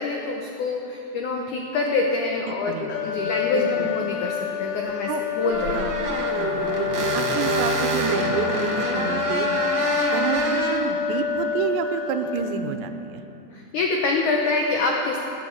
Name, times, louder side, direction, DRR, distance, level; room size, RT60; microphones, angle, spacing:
voice 1, 0.0-5.1 5.4-5.8 13.5-15.2, left 3 dB, 90° left, 0 dB, 1.7 m, -25 dB
voice 2, 2.5-3.9 5.1-5.2 5.7-6.0 6.3-9.5 10.1-13.2, right 7 dB, 85° right, 7 dB, 3.0 m, -29 dB
sound 1, 2.9-12.8, left 8 dB, 70° left, 2.7 m, -28 dB
sound 2, 4.8-4.9 5.4-10.8, right 3 dB, 55° right, 1.8 m, -27 dB
16.5 x 9.2 x 8.2 m, 2.8 s
omnidirectional pair, 5.0 m